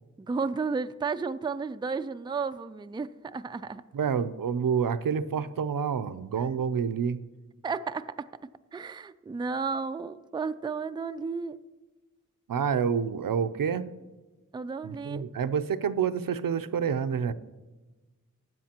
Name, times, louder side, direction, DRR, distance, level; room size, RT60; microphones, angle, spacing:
voice 1, 0.2-3.8 7.6-8.3 8.7-11.6 14.5-15.2, right 4 dB, 15° right, 11 dB, 0.3 m, -33 dB
voice 2, 3.9-7.2 12.5-13.9 14.8-17.3, right 7 dB, 80° right, 11 dB, 0.5 m, -28 dB
15.0 x 9.6 x 2.9 m, 1.2 s
wide cardioid pair, 75°, 33 cm